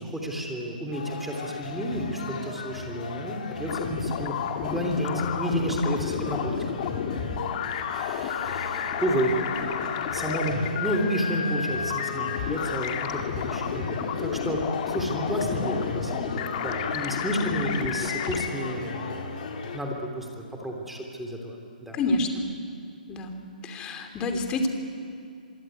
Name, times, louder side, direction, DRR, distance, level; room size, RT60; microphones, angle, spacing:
voice 1, 0.0-22.0, equal, 5° right, 1 dB, 3.2 m, -31 dB
sound 1, 0.9-19.8, left 5 dB, 55° left, 4.0 m, -37 dB
sound 2, 3.7-18.5, left 7 dB, 35° left, 2.3 m, -31 dB
voice 2, 21.9-22.4 23.1-23.4 23.6-24.7, left 2 dB, 20° left, 5 dB, 3.0 m, -27 dB
26.0 x 24.0 x 9.3 m, 2.4 s
hypercardioid pair, 150°, 5 cm